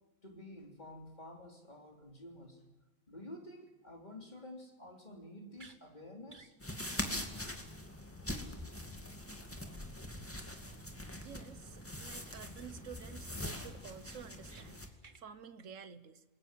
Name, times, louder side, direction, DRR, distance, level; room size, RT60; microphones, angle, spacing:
voice 1, 0.2-2.6 3.1-6.5 10.2-10.3, left 1 dB, 30° left, 2 dB, 3.7 m, -50 dB
sound 1, 5.5-5.8 6.3-6.5 6.9-7.0 7.3-7.4 7.7-7.8 11.9-12.1 12.5-12.9 13.3-13.4 13.7-14.7 15.0-15.2, right 4 dB, 35° right, 1.4 m, -58 dB
sound 2, 6.6-14.9, left 1 dB, 10° left, 2.2 m, -43 dB
voice 2, 11.1-16.2, right 7 dB, 65° right, 12 dB, 1.6 m, -51 dB
28.0 x 21.0 x 7.7 m, 1.1 s
omnidirectional pair, 1.4 m